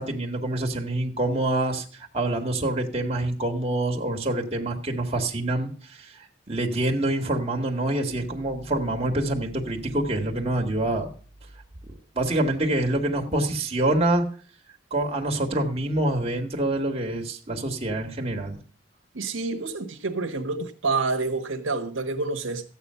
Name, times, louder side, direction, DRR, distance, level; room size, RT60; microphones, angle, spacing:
voice 1, 0.0-6.1 6.5-11.1 12.1-14.2 14.9-18.6, right 1 dB, 30° right, 1.8 m, -26 dB
voice 2, 19.1-22.6, right 3 dB, 75° right, 1.3 m, -28 dB
14.0 x 8.9 x 5.6 m
head